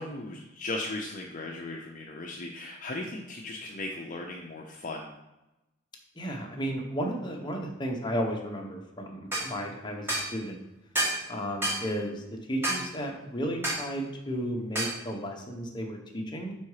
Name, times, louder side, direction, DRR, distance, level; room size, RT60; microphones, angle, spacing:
voice 1, 0.0-5.1, left 2 dB, 40° left, 0 dB, 0.5 m, -37 dB
voice 2, 6.2-10.6 11.3-12.2 12.5-16.6, equal, 20° left, 1 dB, 0.9 m, -33 dB
sound 1, 9.3-9.5 10.1-10.3 10.9-11.2 11.6-11.8 12.6-12.8 13.6-13.8 14.7-15.0, right 1 dB, 10° right, 1.5 m, -28 dB
4.7 x 4.3 x 4.8 m, 0.97 s
head